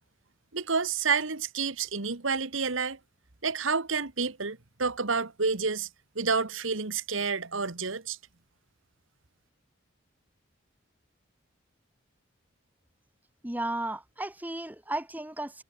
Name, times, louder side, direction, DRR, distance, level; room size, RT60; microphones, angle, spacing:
voice 1, 0.5-3.0 3.4-5.9 6.2-8.2, right 5 dB, 80° right, 1.8 m, -29 dB
voice 2, 13.4-15.6, right 1 dB, 10° right, 1.1 m, -34 dB
head